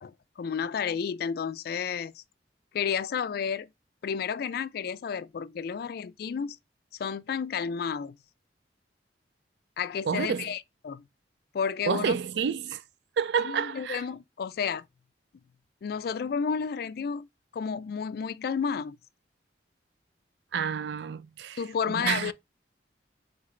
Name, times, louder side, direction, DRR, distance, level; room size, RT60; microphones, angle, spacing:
voice 1, 0.0-2.2 2.7-3.7 4.0-6.6 7.0-8.1 9.8-11.0 11.5-12.2 13.4-14.8 15.8-17.3 17.5-19.0 21.6-22.3, left 6 dB, 55° left, 0.3 m, -31 dB
voice 2, 10.1-10.5 11.9-12.8 13.2-14.0 20.5-21.6 21.9-22.3, right 6 dB, 70° right, 0.3 m, -29 dB
3.7 x 3.2 x 3.7 m
head